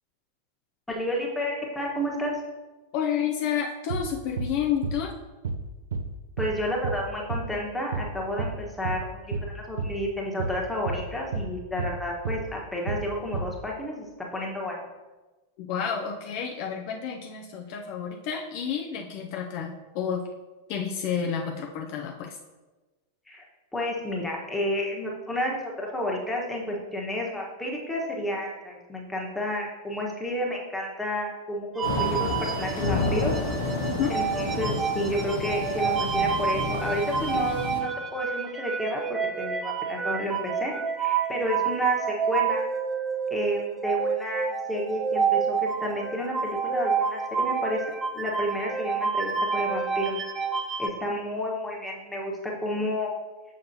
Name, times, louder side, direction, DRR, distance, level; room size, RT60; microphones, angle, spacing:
voice 1, 0.9-2.4 6.4-14.8 23.3-23.4 23.7-33.3 34.1-42.6 43.3-50.1 50.8-53.1, equal, 5° left, -2 dB, 1.2 m, -31 dB
voice 2, 2.9-5.1 15.6-20.2 20.7-22.4 34.0-34.1, left 8 dB, 50° left, 1 dB, 0.5 m, -30 dB
sound 1, 3.9-4.1 4.4-4.6 4.8-5.0 5.4-5.6 5.9-6.1 6.4-6.6 6.8-7.0 7.3-7.5 7.9-8.1 8.4-8.6 8.8-9.0 9.3-9.5 9.8-10.0 10.4-10.6 10.9-11.1 11.3-11.5 11.8-12.0 12.2-12.4 12.9-13.1 13.3-13.5, right 4 dB, 65° right, 0.4 m, -31 dB
Thunder / Rain, 31.8-37.8, left 3 dB, 65° left, 1.2 m, -30 dB
sound 2, 31.8-50.9, right 6 dB, 15° right, 0.5 m, -29 dB
6.6 x 5.2 x 2.8 m, 1.2 s
figure-of-eight pair, 90°, 0 cm